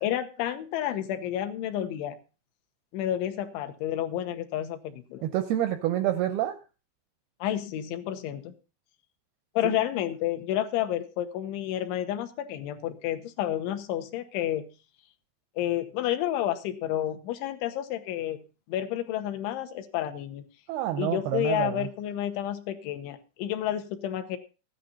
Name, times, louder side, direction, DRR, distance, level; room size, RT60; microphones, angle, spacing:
voice 1, 0.0-2.2 2.9-5.2 7.4-8.5 9.6-14.7 15.6-18.4 18.7-20.5 21.0-24.4, left 12 dB, 80° left, 8 dB, 3.4 m, -30 dB
voice 2, 5.2-6.6 9.6-9.7 20.7-21.9, right 12 dB, 85° right, 10 dB, 2.2 m, -28 dB
14.5 x 10.0 x 4.0 m, 0.33 s
omnidirectional pair, 5.4 m